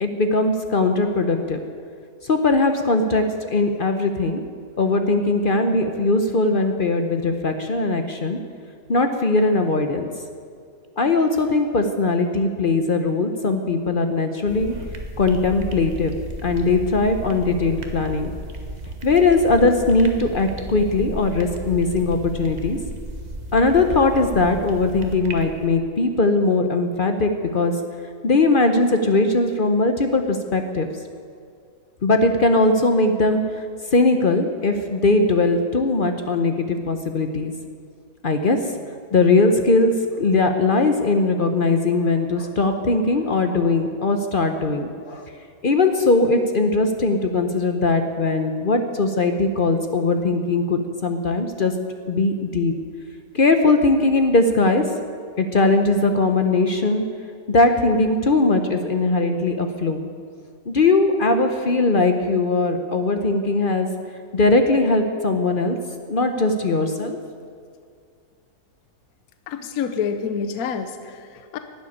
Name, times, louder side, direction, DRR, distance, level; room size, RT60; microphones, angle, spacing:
voice 1, 0.0-1.6 2.2-4.4 4.8-8.4 8.9-10.1 11.0-14.7 15.2-16.1 16.4-18.3 19.0-22.8 23.5-27.7 28.2-30.9 32.0-33.4 33.9-37.5 38.2-38.6 39.1-45.3 45.6-51.7 52.1-52.7 53.3-54.8 55.4-57.0 57.5-60.1 60.7-63.9 64.3-65.8 66.1-67.2, left 3 dB, 45° left, 6 dB, 0.7 m, -20 dB
sound 1, 14.5-25.7, right 1 dB, 30° right, 1.2 m, -34 dB
voice 2, 69.5-71.6, left 6 dB, 65° left, 8 dB, 1.2 m, -28 dB
12.0 x 7.9 x 9.9 m, 2.3 s
omnidirectional pair, 1.7 m